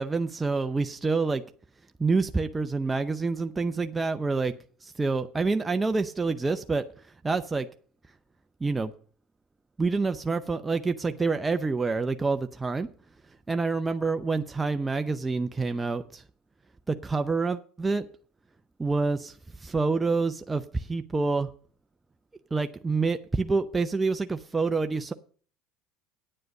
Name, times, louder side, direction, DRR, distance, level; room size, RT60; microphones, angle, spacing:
voice 1, 0.0-1.4 2.0-4.5 5.0-7.7 8.6-8.9 9.8-12.9 13.5-16.2 16.9-18.1 18.8-21.5 22.5-25.1, right 4 dB, 15° right, 8 dB, 0.6 m, -27 dB
9.4 x 7.7 x 6.4 m, 0.43 s
supercardioid pair, 95°, 0 cm